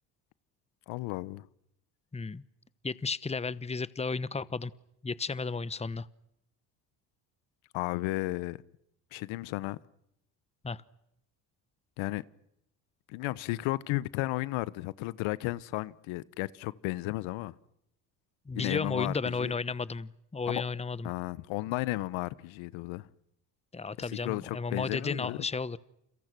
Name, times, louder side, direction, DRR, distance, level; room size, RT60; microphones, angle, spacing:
voice 1, 0.9-1.5 7.7-8.6 9.1-9.8 12.0-12.2 13.1-17.5 18.5-19.5 20.5-20.6 21.0-23.1 24.0-25.4, left 19 dB, 70° left, 1.2 m, -34 dB
voice 2, 2.1-2.4 2.8-4.7 5.0-6.1 10.6-10.8 18.5-21.1 23.7-25.8, left 4 dB, 15° left, 1.1 m, -33 dB
30.0 x 29.5 x 6.2 m
hypercardioid pair, 60°, 49 cm